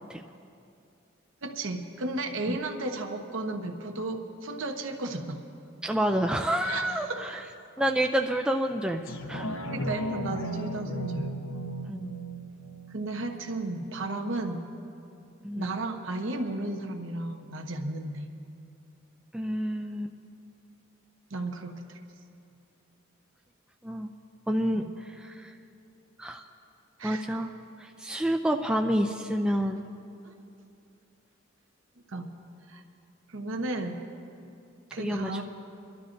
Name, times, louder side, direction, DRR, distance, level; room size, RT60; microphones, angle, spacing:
voice 1, 1.4-5.4 6.6-7.4 9.7-11.3 12.9-14.7 15.6-18.3 21.3-22.0 24.7-24.9 27.0-27.4 30.2-30.3 32.1-32.3 32.7-32.8 33.3-34.0 34.9-35.4, right 2 dB, 75° right, 3 dB, 0.9 m, -34 dB
voice 2, 5.8-7.4 7.8-9.5 11.9-12.1 15.4-15.8 19.3-20.1 23.8-24.1 24.5-25.5 26.2-26.4 27.0-27.5 27.8-29.8 35.0-35.4, equal, 5° right, 3 dB, 0.3 m, -29 dB
sound 1, 9.1-14.1 14.5-14.6, right 1 dB, 85° left, 0.9 m, -35 dB
29.5 x 12.0 x 2.6 m, 2.6 s
head